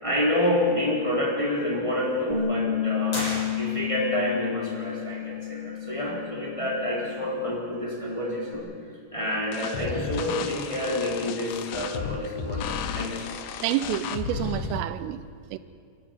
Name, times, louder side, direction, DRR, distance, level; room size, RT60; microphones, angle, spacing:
voice 1, 0.0-3.3 3.6-8.7 9.1-13.6, left 1 dB, 5° left, 3.3 m, -28 dB
Bass guitar, 2.3-8.6, left 9 dB, 70° right, 5.2 m, -32 dB
sound 1, 3.1-4.1, left 1 dB, 20° left, 7.0 m, -34 dB
sound 2, 9.5-14.8, left 7 dB, 75° left, 2.8 m, -33 dB
voice 2, 13.6-15.6, right 13 dB, 90° right, 3.4 m, -29 dB
27.0 x 13.0 x 9.7 m
omnidirectional pair, 5.8 m